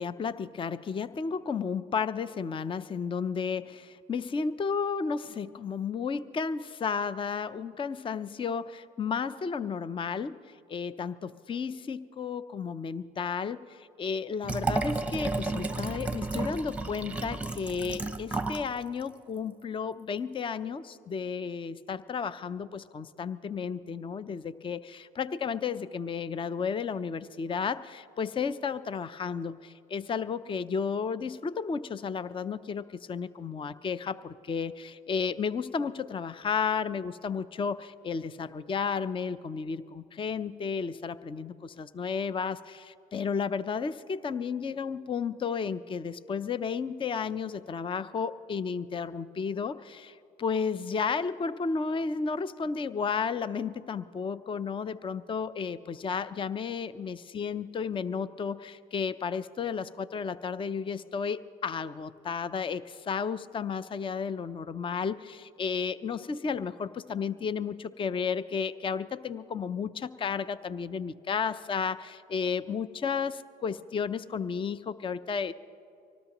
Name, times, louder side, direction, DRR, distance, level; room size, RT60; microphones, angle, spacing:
voice 1, 0.0-10.4 10.7-75.5, left 6 dB, 25° left, 15 dB, 0.5 m, -33 dB
Liquid, 14.4-18.7 19.0-19.1, right 3 dB, 5° right, 0.9 m, -32 dB
25.0 x 18.5 x 3.0 m, 2.5 s
supercardioid pair, 75°, 19 cm